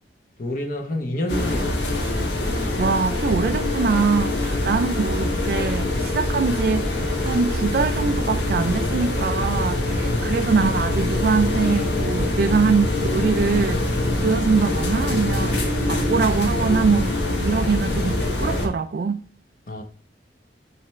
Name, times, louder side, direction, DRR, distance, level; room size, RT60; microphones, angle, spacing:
voice 1, 0.4-2.0 10.1-10.4 19.7-19.8, left 1 dB, 50° left, 1.0 m, -29 dB
sound 1, 1.3-18.7, left 1 dB, 80° left, 1.5 m, -24 dB
voice 2, 2.8-15.6 15.9-17.2 17.4-19.2, right 5 dB, 55° right, 0.3 m, -23 dB
9.5 x 3.4 x 3.1 m
head